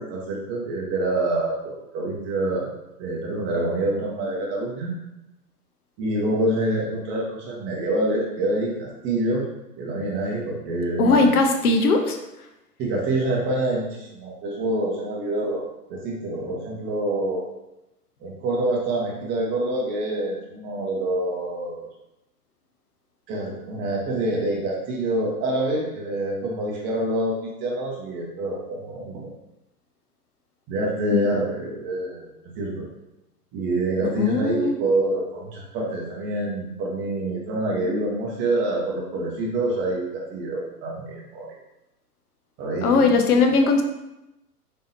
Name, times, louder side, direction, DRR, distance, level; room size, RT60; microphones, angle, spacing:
voice 1, 0.0-2.7 3.0-4.9 6.0-9.5 9.8-11.3 12.8-15.6 15.9-17.4 18.2-21.9 23.3-29.3 30.7-32.3 32.6-32.9 33.5-41.5 42.6-43.1, right 1 dB, 25° right, -2 dB, 0.9 m, -26 dB
voice 2, 11.0-12.2 31.1-31.2 34.1-34.8 42.8-43.8, left 3 dB, 65° left, 4 dB, 0.8 m, -19 dB
4.3 x 3.5 x 2.7 m, 0.92 s
hypercardioid pair, 120°, 48 cm